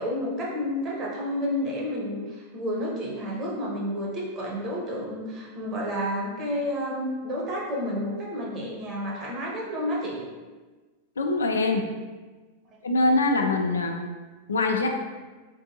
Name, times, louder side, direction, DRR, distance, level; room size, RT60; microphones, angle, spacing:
voice 1, 0.0-10.2, equal, 30° right, -4 dB, 0.9 m, -30 dB
voice 2, 11.2-11.9 12.8-14.0 14.5-14.9, left 2 dB, 70° left, 4 dB, 0.3 m, -23 dB
3.6 x 2.5 x 2.7 m, 1.3 s
figure-of-eight pair, 90°, 0 cm